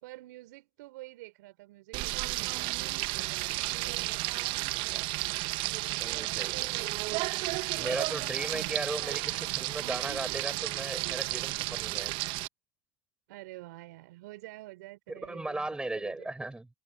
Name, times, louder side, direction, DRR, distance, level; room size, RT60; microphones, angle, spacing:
voice 1, 0.0-4.3 8.5-8.8 13.3-15.7 15.9-16.3, right 19 dB, 70° right, 4.5 m, -48 dB
Frying (food), 1.9-12.5, right 21 dB, 55° right, 1.1 m, -32 dB
voice 2, 6.0-6.7 7.7-12.1 15.1-16.7, right 2 dB, 10° right, 6.6 m, -37 dB
hypercardioid pair, 95°, 10 cm